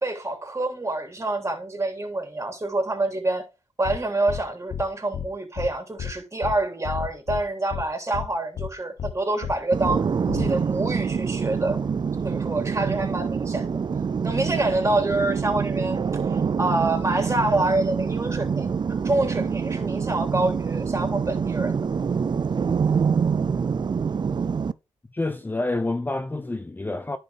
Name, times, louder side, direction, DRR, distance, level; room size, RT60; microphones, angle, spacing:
voice 1, 0.0-3.5 3.8-10.0 10.3-11.8 12.2-13.7 14.2-16.0 16.3-21.8, right 2 dB, 25° right, 3.2 m, -26 dB
sound 1, 3.8-4.0 4.3-4.4 4.7-4.8 5.1-5.3 5.6-5.7 6.0-6.1 6.4-6.6 6.8-7.4 7.7-7.8 8.1-8.3 8.6-8.7 9.0-9.1 9.4-9.6 9.8-10.0 10.3-10.5, left 8 dB, 75° left, 0.9 m, -31 dB
sound 2, 9.7-24.7, right 6 dB, 45° right, 0.5 m, -26 dB
voice 2, 25.1-27.2, left 2 dB, 20° left, 0.6 m, -28 dB
10.5 x 5.6 x 3.5 m
supercardioid pair, 50°, 11 cm